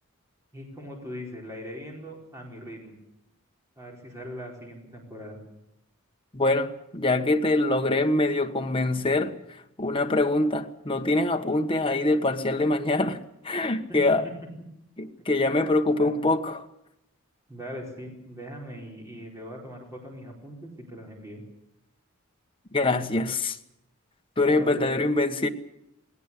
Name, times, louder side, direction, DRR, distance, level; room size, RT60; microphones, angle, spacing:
voice 1, 0.5-3.0 3.8-5.4 13.9-14.2 16.0-16.3 17.5-21.4 24.4-25.0, equal, 15° right, 4.5 m, -40 dB
voice 2, 6.3-9.4 9.8-14.3 15.0-16.7 22.7-23.6 24.4-25.5, left 2 dB, 25° left, 1.3 m, -24 dB
19.0 x 18.0 x 8.4 m
head